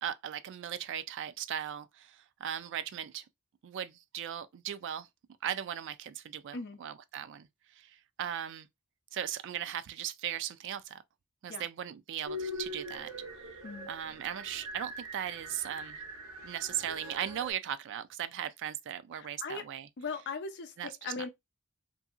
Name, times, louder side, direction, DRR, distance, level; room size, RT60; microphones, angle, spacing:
voice 1, 0.0-3.2 3.6-5.1 5.4-7.5 7.8-8.7 9.1-11.0 11.4-13.1 13.9-16.0 16.4-19.9 20.8-21.3, right 10 dB, 55° right, 0.3 m, -38 dB
sound 1, 12.3-17.5, equal, 90° right, 1.2 m, -42 dB
voice 2, 19.1-19.6 20.0-21.3, left 4 dB, 50° left, 0.5 m, -39 dB
2.7 x 2.6 x 2.4 m
head